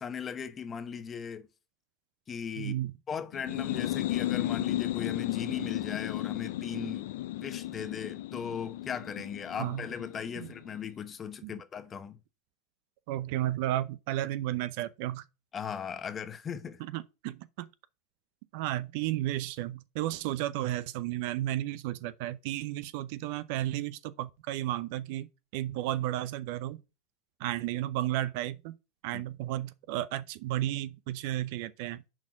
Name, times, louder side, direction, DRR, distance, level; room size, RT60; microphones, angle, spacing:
voice 1, 0.0-1.5 2.3-2.8 3.1-12.2 15.5-16.8 29.1-29.2, left 7 dB, 25° left, 1.0 m, -38 dB
voice 2, 2.6-2.9 9.6-9.8 10.4-10.5 11.4-11.6 13.1-15.2 16.8-17.7 18.5-26.8 27.4-28.7 29.0-32.0, right 14 dB, 65° right, 0.6 m, -33 dB
sound 1, 3.3-10.8, left 15 dB, 75° left, 0.5 m, -34 dB
6.0 x 4.4 x 6.2 m
supercardioid pair, 120°, 0 cm